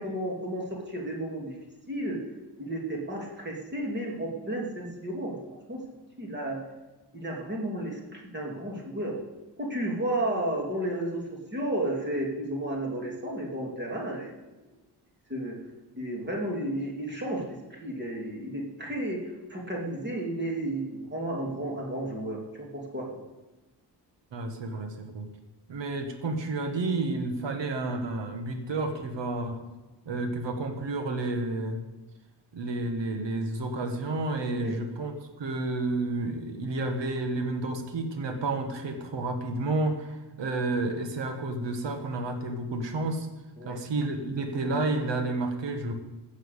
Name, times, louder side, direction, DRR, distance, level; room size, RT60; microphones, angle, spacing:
voice 1, 0.0-1.6 1.9-2.2 2.6-5.4 5.7-5.8 6.2-6.6 7.1-9.2 9.6-14.3 15.3-15.6 15.9-19.2 19.5-23.2 34.5-34.8 43.6-43.8, right 1 dB, 25° right, -1 dB, 2.9 m, -32 dB
voice 2, 24.3-25.3 25.7-29.6 30.1-31.8 32.5-43.3 43.7-46.0, right 2 dB, 90° right, 6 dB, 1.9 m, -30 dB
15.5 x 6.4 x 8.3 m, 1.1 s
wide cardioid pair, 160°, 42 cm